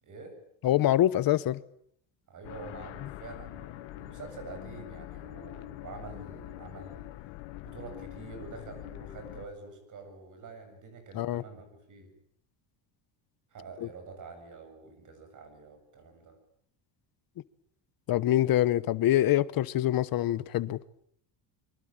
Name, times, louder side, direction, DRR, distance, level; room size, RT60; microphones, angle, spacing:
voice 1, 0.0-0.4 2.3-7.1 7.6-12.1 13.5-16.4, right 4 dB, 40° right, 8 dB, 8.0 m, -46 dB
voice 2, 0.6-1.6 11.1-11.4 13.8-13.9 18.1-20.8, left 13 dB, 45° left, 17 dB, 1.1 m, -25 dB
sound 1, 2.4-9.5, left 16 dB, 75° left, 1.9 m, -44 dB
24.5 x 24.5 x 8.9 m, 0.67 s
cardioid pair, 175°, 48 cm